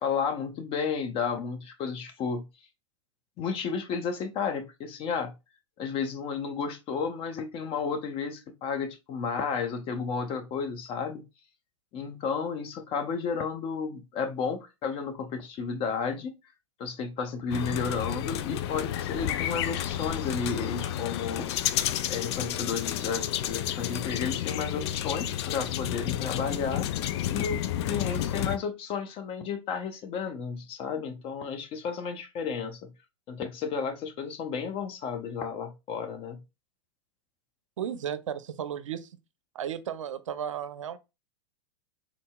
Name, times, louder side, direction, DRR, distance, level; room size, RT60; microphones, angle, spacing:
voice 1, 0.0-2.4 3.4-5.3 5.8-11.2 11.9-16.3 16.8-21.5 22.1-26.9 27.3-32.8 33.3-36.4, left 5 dB, 35° left, 0.7 m, -32 dB
sound 1, 17.5-28.6, left 11 dB, 60° left, 0.4 m, -31 dB
voice 2, 37.8-39.2 39.5-41.0, right 9 dB, 80° right, 0.4 m, -34 dB
3.9 x 2.7 x 2.3 m
hypercardioid pair, 105°, 16 cm